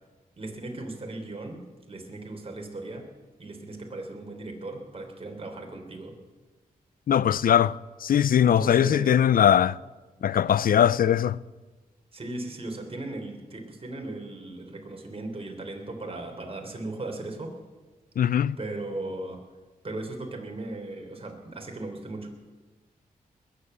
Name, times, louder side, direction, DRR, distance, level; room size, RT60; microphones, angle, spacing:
voice 1, 0.4-3.1 3.4-6.2 8.4-9.2 12.1-17.6 18.6-19.4 19.8-22.3, right 2 dB, 40° right, 3.4 m, -37 dB
voice 2, 7.1-9.8 10.2-11.4 18.2-18.6, left 9 dB, 70° left, 0.4 m, -21 dB
20.5 x 7.8 x 8.0 m
cardioid pair, 65°, 15 cm